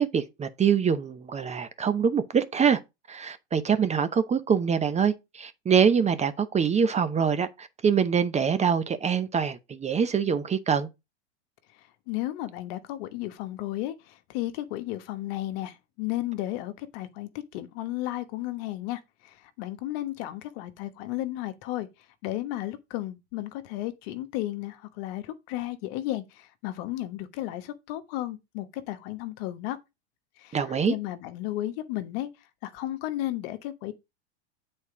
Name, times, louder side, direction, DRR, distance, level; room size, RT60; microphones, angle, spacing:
voice 1, 0.0-2.8 3.1-10.9 30.5-30.9, right 7 dB, 20° right, 0.8 m, -24 dB
voice 2, 12.1-21.9 22.2-29.8 30.4-32.3 32.6-33.9, left 15 dB, 55° left, 1.2 m, -34 dB
8.2 x 4.4 x 4.9 m
hypercardioid pair, 100°, 33 cm